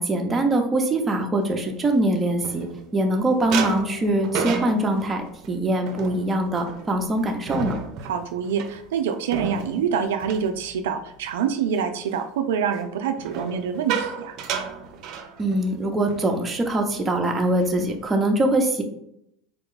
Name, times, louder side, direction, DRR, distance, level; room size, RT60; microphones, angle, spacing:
voice 1, 0.0-2.7 2.9-7.7 15.4-18.8, right 1 dB, 20° right, 2 dB, 0.8 m, -23 dB
sound 1, 1.6-3.1 3.5-11.3 11.7-12.0 13.2-15.8 16.1-16.3 16.6-16.9 17.4-18.0, right 6 dB, 55° right, 0.7 m, -33 dB
voice 2, 8.0-14.4, right 7 dB, 85° right, 6 dB, 0.3 m, -26 dB
4.2 x 2.2 x 3.7 m, 0.77 s
supercardioid pair, 100°, 0 cm